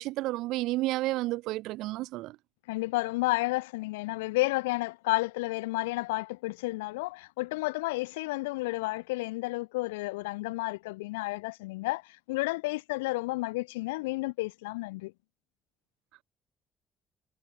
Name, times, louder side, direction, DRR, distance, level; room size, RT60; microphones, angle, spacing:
voice 1, 0.0-2.4, right 18 dB, 65° right, 2.4 m, -31 dB
voice 2, 2.7-15.1, left 22 dB, 70° left, 6.5 m, -31 dB
figure-of-eight pair, 45°, 0 cm